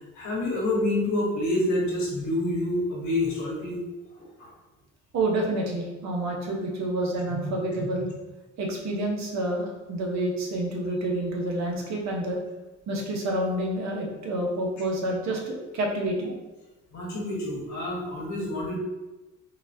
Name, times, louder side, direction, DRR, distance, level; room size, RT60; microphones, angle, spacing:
voice 1, 0.1-3.8 4.2-4.5 16.9-18.8, left 1 dB, 65° left, -3 dB, 1.1 m, -28 dB
voice 2, 5.1-8.1 8.6-12.4 12.9-16.3, right 1 dB, 65° right, 0 dB, 0.9 m, -28 dB
3.8 x 2.3 x 2.6 m, 1.1 s
cardioid pair, 90°, 30 cm